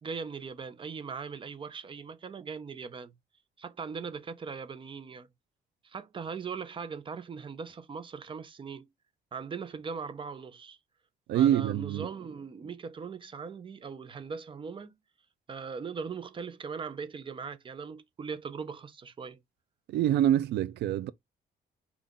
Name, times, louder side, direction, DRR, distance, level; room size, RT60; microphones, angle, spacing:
voice 1, 0.0-3.1 3.6-5.3 5.8-8.9 9.3-10.8 11.3-14.9 15.5-19.4, right 5 dB, 30° right, 0.6 m, -40 dB
voice 2, 11.3-12.1 19.9-21.1, right 11 dB, 85° right, 0.4 m, -25 dB
5.4 x 2.4 x 3.7 m
cardioid pair, 125°, 17 cm